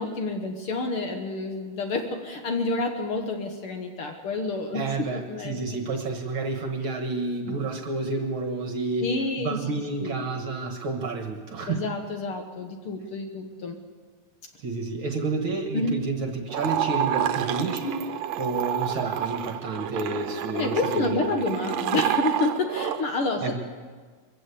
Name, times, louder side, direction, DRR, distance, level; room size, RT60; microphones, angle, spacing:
voice 1, 0.0-5.6 9.0-9.6 10.0-10.2 11.7-13.8 15.7-16.0 20.5-23.6, left 3 dB, 55° left, 5 dB, 1.8 m, -29 dB
voice 2, 4.7-9.1 9.4-11.8 14.6-21.4 23.4-23.6, right 3 dB, 50° right, 5 dB, 1.9 m, -30 dB
sound 1, 16.5-23.0, right 10 dB, 70° right, 1.9 m, -29 dB
23.0 x 15.0 x 8.4 m, 1.5 s
omnidirectional pair, 3.3 m